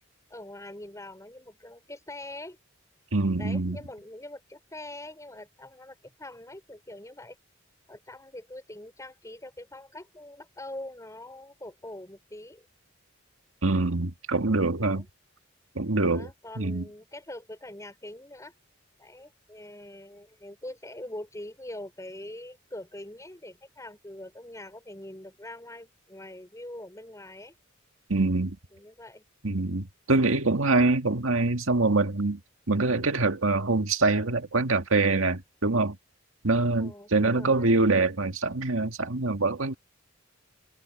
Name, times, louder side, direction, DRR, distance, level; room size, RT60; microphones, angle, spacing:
voice 1, 0.3-2.6 3.4-7.4 7.9-12.7 14.8-15.0 16.1-18.5 19.0-27.5 28.7-29.2 36.8-37.8, left 1 dB, 15° left, 5.7 m, -43 dB
voice 2, 3.1-3.8 13.6-15.1 15.8-16.3 16.6-16.8 28.1-28.6 29.4-32.4 32.7-36.0 36.4-39.7, right 3 dB, 90° right, 1.9 m, -24 dB
head